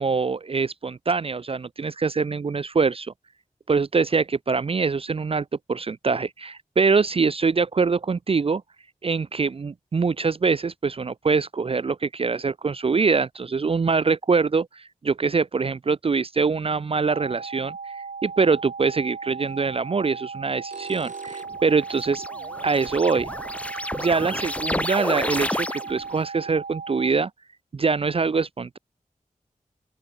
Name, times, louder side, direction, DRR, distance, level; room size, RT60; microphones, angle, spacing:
voice 1, 0.0-3.1 3.7-8.6 9.0-22.2 22.6-23.3 24.0-27.3 27.7-28.8, right 4 dB, 45° right, 0.4 m, -24 dB
sound 1, 17.1-27.1, right 5 dB, 85° right, 2.0 m, -37 dB
sound 2, 19.5-19.7 20.5-21.7 24.4-24.5 25.3-25.4 25.8-25.9 26.2-26.3, right 4 dB, 60° right, 5.3 m, -45 dB
sound 3, 21.2-26.2, left 1 dB, 10° left, 0.6 m, -31 dB
open air
wide cardioid pair, 75°, 14 cm